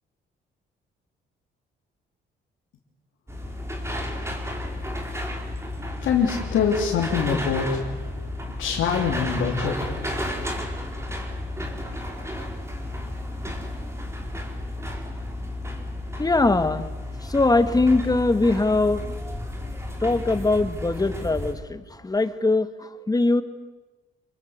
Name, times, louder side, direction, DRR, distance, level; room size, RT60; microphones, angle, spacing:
sound 1, 3.3-21.5, left 1 dB, 15° right, 4.9 m, -32 dB
voice 1, 6.0-7.8 8.6-9.7, left 7 dB, 80° left, -2 dB, 3.2 m, -24 dB
voice 2, 16.2-16.9 17.2-19.2 20.0-23.4, left 2 dB, 20° left, 11 dB, 1.9 m, -22 dB
27.5 x 22.0 x 8.2 m, 1.2 s
cardioid pair, 90°, 20 cm